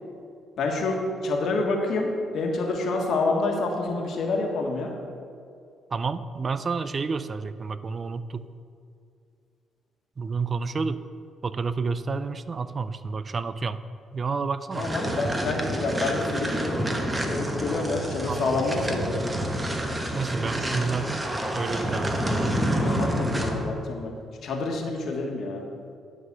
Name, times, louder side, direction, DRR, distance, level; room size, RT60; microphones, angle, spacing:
voice 1, 0.6-4.9 14.7-16.8 17.2-19.1 22.8-24.1 24.4-25.6, left 3 dB, 70° left, 1 dB, 1.4 m, -28 dB
voice 2, 5.9-8.5 10.2-11.0 11.4-13.8 14.1-14.9 18.3-18.5 18.8-18.9 20.0-21.3 21.5-22.2, right 4 dB, 40° right, 13 dB, 0.4 m, -30 dB
sound 1, 14.7-23.7, right 1 dB, 20° right, 1.0 m, -28 dB
11.0 x 4.0 x 6.7 m, 2.4 s
cardioid pair, 90°, 0 cm